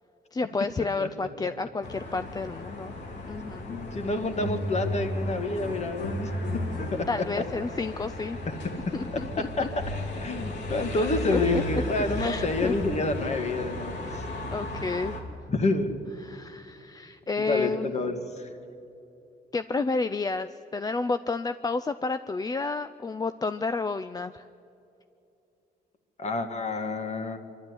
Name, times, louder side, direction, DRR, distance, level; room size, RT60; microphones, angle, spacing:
voice 1, 0.3-3.0 3.3-3.7 7.1-8.4 8.9-9.7 11.3-11.6 12.2-12.7 14.5-15.2 16.2-17.9 19.5-24.4, left 3 dB, 20° left, 11 dB, 0.4 m, -30 dB
sound 1, 1.8-15.2, left 1 dB, 85° left, 2.5 m, -36 dB
sound 2, 3.7-4.1 4.3-7.4, equal, 70° left, 3.1 m, -33 dB
voice 2, 3.9-6.3 6.9-7.0 8.5-8.6 8.9-9.0 9.6-9.7 10.2-14.2 15.5-15.9 17.4-18.5 26.2-27.4, left 2 dB, 40° left, 7 dB, 2.0 m, -28 dB
25.0 x 12.0 x 9.7 m, 2.7 s
cardioid pair, 110°, 18 cm